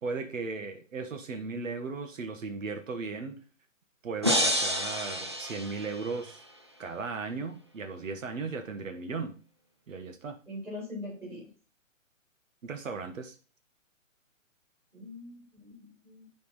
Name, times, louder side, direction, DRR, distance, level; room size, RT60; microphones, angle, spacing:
voice 1, 0.0-3.4 4.0-6.4 6.8-9.4 9.9-10.4 12.6-13.3, right 4 dB, 75° right, 1.5 m, -36 dB
sound 1, 4.2-6.4, equal, 20° right, 0.4 m, -29 dB
voice 2, 10.5-11.5 14.9-16.3, left 1 dB, 5° right, 3.4 m, -42 dB
9.2 x 4.5 x 4.0 m
hypercardioid pair, 165°, 40 cm